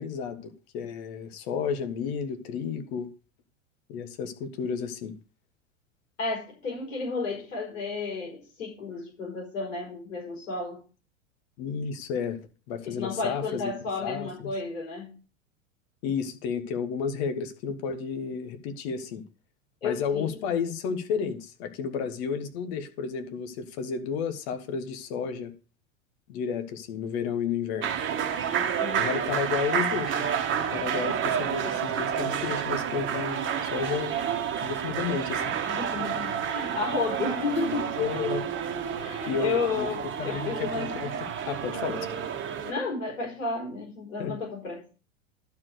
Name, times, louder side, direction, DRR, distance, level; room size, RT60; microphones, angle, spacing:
voice 1, 0.0-3.1 3.9-5.1 11.6-12.4 12.7-13.7 14.0-14.5 16.0-19.2 19.8-25.5 26.3-27.9 29.0-30.3 30.7-33.4 33.7-34.2 34.6-35.5 38.0-38.4 39.3-39.9 40.2-41.1 41.5-42.1 44.2-44.4, left 6 dB, 55° left, 1.6 m, -32 dB
voice 2, 6.2-10.8 12.8-15.1 19.8-20.4 28.8-29.1 35.6-38.0 39.0-41.0 42.6-44.8, left 4 dB, 75° left, 4.6 m, -32 dB
sound 1, 27.8-42.7, right 8 dB, 30° right, 1.4 m, -30 dB
11.5 x 4.8 x 6.4 m
figure-of-eight pair, 90°, 39 cm